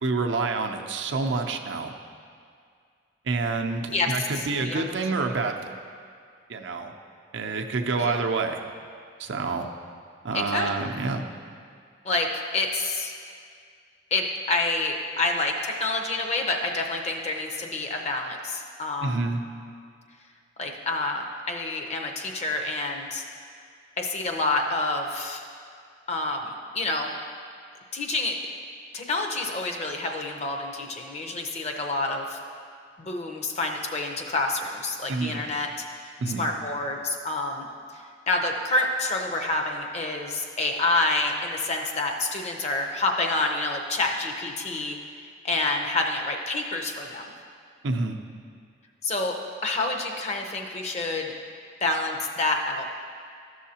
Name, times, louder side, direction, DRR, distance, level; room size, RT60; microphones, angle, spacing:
voice 1, 0.0-1.9 3.2-5.7 6.5-6.9 7.3-8.6 9.2-9.7 10.2-11.2 19.0-19.4 35.1-35.4 36.2-36.4 47.8-48.2, right 3 dB, 70° right, 3 dB, 0.5 m, -28 dB
voice 2, 4.6-4.9 8.0-8.2 10.3-10.7 12.0-12.3 12.5-13.1 14.1-19.2 20.6-23.2 24.0-25.4 26.1-27.1 27.9-28.4 28.9-32.4 33.0-35.7 36.0-37.7 37.9-45.0 45.4-47.3 49.0-49.4 49.6-51.3 51.8-52.8, left 2 dB, 35° left, 2 dB, 0.6 m, -28 dB
12.5 x 6.3 x 2.8 m, 2.2 s
head